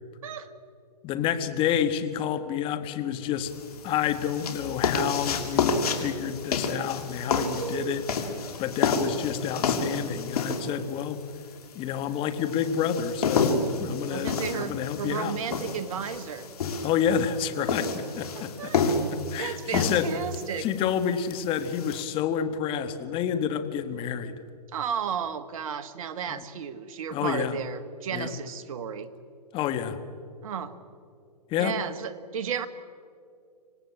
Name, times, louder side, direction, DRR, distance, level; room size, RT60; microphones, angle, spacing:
voice 1, 1.0-3.5 3.8-8.0 8.6-11.2 11.7-15.4 16.8-19.0 19.3-20.1 20.6-24.3 26.3-26.4 27.1-27.6 28.1-28.3 29.5-30.0 31.5-31.7, left 9 dB, 25° left, 10 dB, 1.6 m, -29 dB
sound 1, 3.5-22.0, left 4 dB, 65° left, 3.1 m, -30 dB
voice 2, 7.3-8.0 14.1-16.5 17.7-17.8 18.3-18.8 19.4-20.7 24.7-29.1 30.4-30.8 31.6-32.7, right 7 dB, 55° right, 11 dB, 1.6 m, -33 dB
25.5 x 18.0 x 8.7 m, 2.3 s
hypercardioid pair, 135°, 21 cm